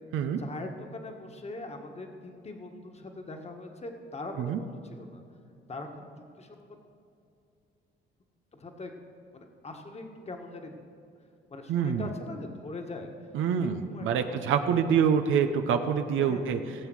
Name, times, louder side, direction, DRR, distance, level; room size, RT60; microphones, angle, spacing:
voice 1, 0.4-5.2 5.7-6.1 6.4-6.8 8.5-8.9 9.3-10.8 11.5-13.3 13.6-14.4 14.7-14.9 16.2-16.7, left 2 dB, 30° left, 3 dB, 1.5 m, -42 dB
voice 2, 11.7-12.1 13.3-16.6, right 7 dB, 85° right, 7 dB, 0.8 m, -26 dB
17.5 x 7.4 x 6.3 m, 2.5 s
cardioid pair, 90°, 20 cm